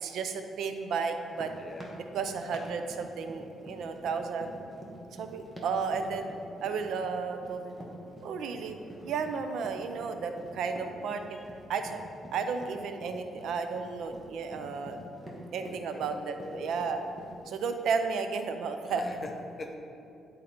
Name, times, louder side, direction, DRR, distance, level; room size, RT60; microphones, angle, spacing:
voice 1, 0.0-1.5 2.1-4.5 5.2-6.3 6.6-7.7 8.2-8.8 9.0-11.4 11.7-12.0 12.3-15.0 15.5-17.0 17.5-19.0, right 5 dB, 75° right, 7 dB, 0.5 m, -33 dB
sound 1, 1.2-17.5, equal, 15° right, 1.1 m, -47 dB
voice 2, 1.6-2.0 8.4-9.1 11.3-11.4 15.6-17.0 18.9-19.7, left 2 dB, 30° left, 3 dB, 0.7 m, -44 dB
10.0 x 3.8 x 4.3 m, 2.7 s
cardioid pair, 120°, 0 cm